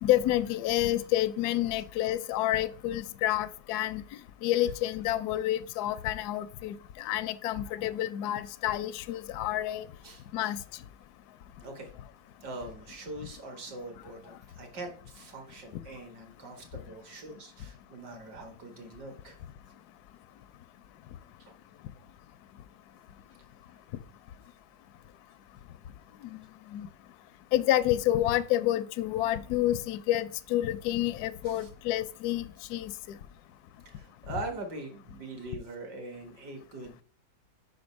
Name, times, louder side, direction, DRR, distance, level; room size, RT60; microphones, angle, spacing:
voice 1, 0.0-4.0 4.4-9.9 10.3-10.6 26.2-26.4 26.7-26.9 27.5-32.9, left 13 dB, 75° left, 0.9 m, -29 dB
voice 2, 10.0-10.5 11.6-11.9 12.4-19.4 21.5-21.6 31.4-31.7 33.9-37.0, right 2 dB, 60° right, 2.0 m, -42 dB
5.2 x 5.2 x 5.1 m
omnidirectional pair, 2.1 m